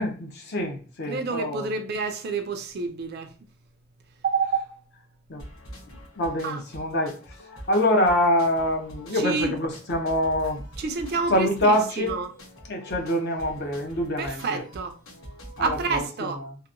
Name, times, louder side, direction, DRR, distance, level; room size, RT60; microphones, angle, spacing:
voice 1, 0.0-1.7 5.3-5.5 6.2-10.6 11.3-12.2 12.7-14.6 15.6-16.6, left 1 dB, 50° left, 0.6 m, -25 dB
voice 2, 1.1-3.3 4.2-4.8 6.4-6.6 9.1-9.5 10.8-12.3 14.2-15.0 15.6-16.4, right 4 dB, 50° right, 0.3 m, -28 dB
sound 1, 5.4-16.1, equal, 75° left, 1.1 m, -44 dB
2.8 x 2.1 x 2.4 m
head